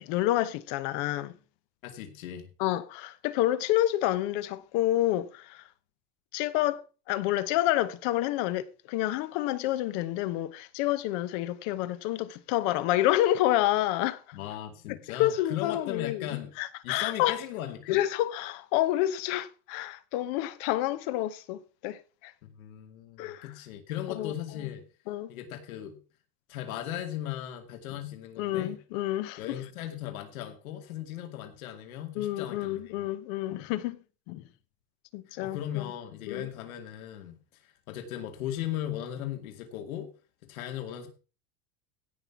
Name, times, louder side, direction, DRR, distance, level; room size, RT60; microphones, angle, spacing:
voice 1, 0.0-1.3 2.6-5.6 6.3-14.4 14.9-16.3 16.6-17.4 17.9-22.3 23.2-23.5 24.1-24.3 25.1-25.3 28.4-29.4 32.2-34.0 34.3-34.4 35.1-35.9 36.3-36.5, left 14 dB, 40° left, 0.9 m, -29 dB
voice 2, 1.8-2.5 14.3-16.5 16.8-18.0 22.6-24.8 25.3-26.0 26.5-28.7 29.4-32.9 35.3-37.4 37.6-40.1 40.5-41.1, left 11 dB, 80° left, 2.5 m, -37 dB
16.5 x 5.7 x 5.8 m
supercardioid pair, 180°, 41 cm